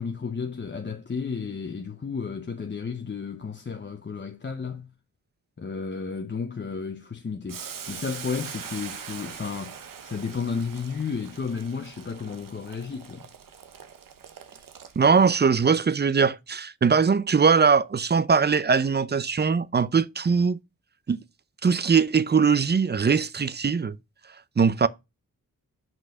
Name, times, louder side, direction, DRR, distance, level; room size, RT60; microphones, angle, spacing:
voice 1, 0.0-4.9 5.6-13.3, left 5 dB, 35° left, 0.9 m, -33 dB
Boiling, 7.5-15.3, right 7 dB, 75° right, 1.2 m, -42 dB
voice 2, 15.0-20.6 21.1-21.2 21.6-24.0 24.6-24.9, right 5 dB, 30° right, 0.5 m, -21 dB
6.2 x 5.2 x 5.3 m
cardioid pair, 85°, 33 cm